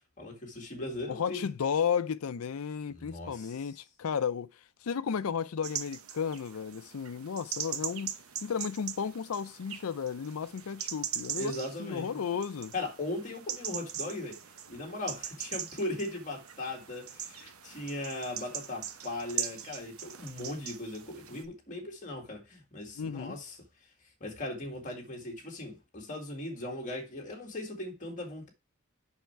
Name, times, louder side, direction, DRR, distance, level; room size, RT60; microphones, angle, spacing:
voice 1, 0.2-1.5 2.9-3.7 11.4-12.1 12.7-14.4 14.7-23.6 24.2-28.5, left 2 dB, 35° left, 2.1 m, -38 dB
voice 2, 1.1-4.5 4.8-11.5 11.8-12.7 23.0-23.4, left 7 dB, 90° left, 0.5 m, -33 dB
sound 1, 5.6-21.5, right 9 dB, 80° right, 0.9 m, -41 dB
7.0 x 5.7 x 4.5 m
head